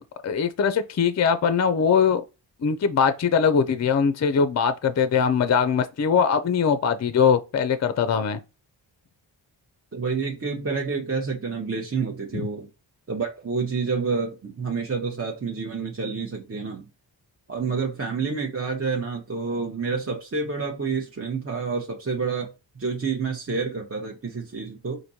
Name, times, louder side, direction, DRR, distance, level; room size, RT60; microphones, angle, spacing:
voice 1, 0.2-2.2 2.6-8.4, left 6 dB, 35° left, 0.5 m, -21 dB
voice 2, 9.9-12.7 13.1-16.8 17.5-25.0, right 5 dB, 30° right, 0.9 m, -28 dB
4.3 x 2.7 x 2.7 m
cardioid pair, 40°, 47 cm